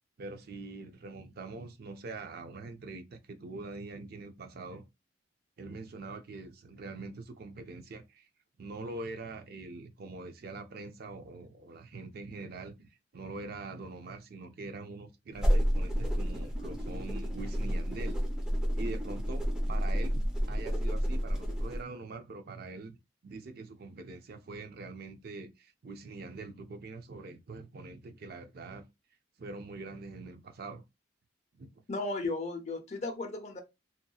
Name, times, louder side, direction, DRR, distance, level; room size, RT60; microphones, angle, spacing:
voice 1, 0.2-4.8 5.6-8.3 8.6-18.2 18.7-23.0 23.2-28.8 29.4-30.8 31.5-31.7, right 3 dB, 55° right, 0.5 m, -44 dB
sound 1, 15.3-21.8, equal, 5° right, 0.6 m, -30 dB
voice 2, 31.9-33.6, left 2 dB, 35° left, 0.6 m, -35 dB
2.8 x 2.7 x 2.3 m
head